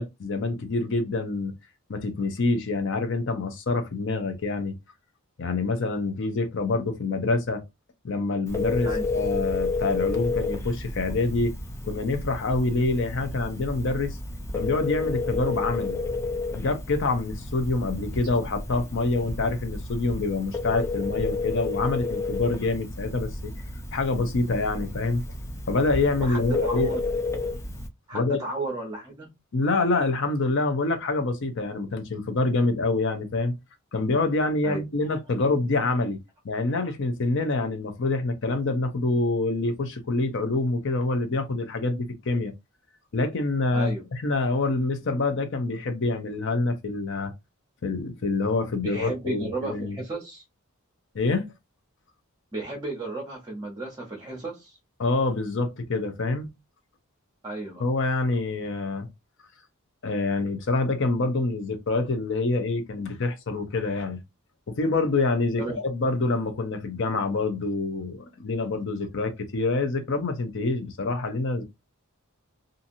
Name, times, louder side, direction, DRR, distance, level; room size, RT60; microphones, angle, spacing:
voice 1, 0.0-1.6 1.9-4.8 5.4-7.6 8.0-11.5 11.8-14.2 14.5-16.0 16.5-23.5 23.9-25.2 25.7-26.9 28.1-28.4 29.5-33.5 33.9-36.2 36.4-42.5 43.1-47.3 47.8-50.0 51.1-51.5 55.0-56.5 57.8-59.1 60.0-64.2 64.7-71.6, left 3 dB, 55° left, 0.6 m, -26 dB
Telephone, 8.5-27.9, left 3 dB, 15° left, 0.4 m, -31 dB
voice 2, 26.2-27.0 28.1-29.3 34.6-34.8 36.7-36.8 43.7-44.1 48.8-50.4 52.5-54.8 57.4-57.9 65.6-65.8, right 2 dB, 20° right, 0.7 m, -34 dB
2.7 x 2.5 x 2.6 m
head